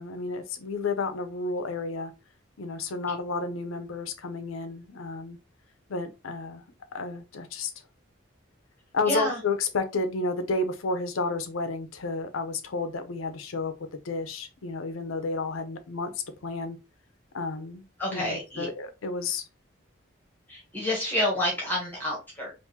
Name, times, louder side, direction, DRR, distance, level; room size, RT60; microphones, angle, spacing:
voice 1, 0.0-2.1 2.6-5.4 5.9-6.6 6.9-7.7 8.9-13.7 14.0-16.1 16.4-16.8 17.3-17.8 18.1-19.4, left 3 dB, 90° left, 0.6 m, -31 dB
voice 2, 9.0-9.4 18.0-18.7 20.5-22.5, left 1 dB, 10° left, 1.1 m, -29 dB
3.5 x 2.6 x 2.8 m
head